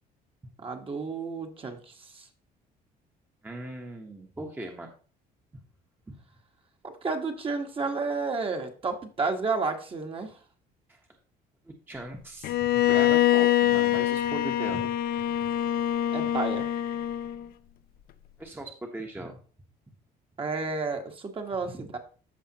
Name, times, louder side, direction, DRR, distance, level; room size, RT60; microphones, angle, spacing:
voice 1, 0.6-2.3 6.8-10.4 16.1-16.7 20.4-22.0, right 4 dB, 30° right, 4 dB, 1.4 m, -31 dB
voice 2, 3.4-4.9 6.1-6.2 10.9-11.0 11.7-14.9 15.4-15.5 16.2-16.3 18.4-19.4 21.7-21.8, right 1 dB, 10° right, 2 dB, 1.1 m, -39 dB
Bowed string instrument, 12.4-17.5, left 13 dB, 65° left, 0.5 m, -24 dB
13.5 x 5.0 x 2.9 m, 0.40 s
cardioid pair, 110°, 17 cm